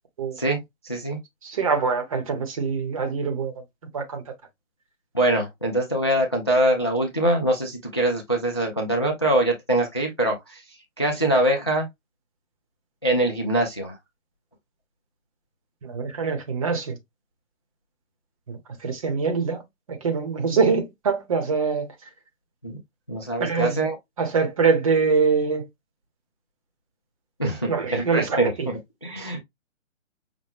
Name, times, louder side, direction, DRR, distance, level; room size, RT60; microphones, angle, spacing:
voice 1, 0.8-1.2 5.1-11.9 13.0-14.0 22.6-22.8 23.1-24.0 27.4-29.4, right 1 dB, 20° left, 0.4 m, -24 dB
voice 2, 1.4-3.5 3.9-4.2 15.8-17.0 18.5-19.6 19.9-21.9 23.4-23.8 24.2-25.6 27.6-28.7, right 5 dB, 25° right, 0.9 m, -24 dB
5.7 x 2.1 x 3.4 m
figure-of-eight pair, 145°, 40 cm